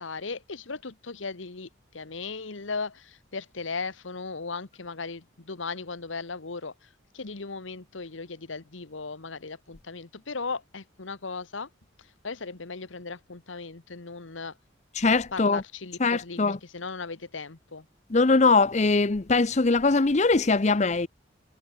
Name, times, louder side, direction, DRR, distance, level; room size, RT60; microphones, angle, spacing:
voice 1, 0.0-1.7 1.9-6.9 7.1-11.7 12.0-14.6 15.3-17.9, left 4 dB, 80° left, 1.3 m, -37 dB
voice 2, 15.0-15.6 16.0-16.6 18.1-21.1, left 3 dB, 35° left, 0.7 m, -21 dB
head